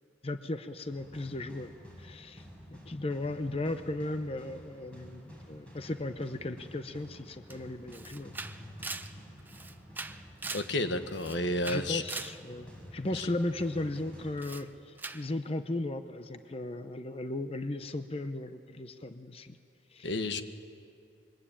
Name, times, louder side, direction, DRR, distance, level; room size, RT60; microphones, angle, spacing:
voice 1, 0.2-1.7 2.0-2.4 2.7-8.3 11.7-19.6 19.9-20.3, left 2 dB, 30° left, 9 dB, 0.7 m, -36 dB
sound 1, 0.9-15.1, equal, 5° left, 5.7 m, -50 dB
Camera, 7.5-7.6 7.9-10.7 11.1-12.4 14.4-14.7 15.0-15.3, right 3 dB, 10° right, 0.7 m, -41 dB
voice 2, 10.5-12.0 13.1-13.3 20.0-20.4, left 1 dB, 80° left, 8 dB, 1.4 m, -31 dB
25.5 x 23.0 x 8.8 m, 2.5 s
head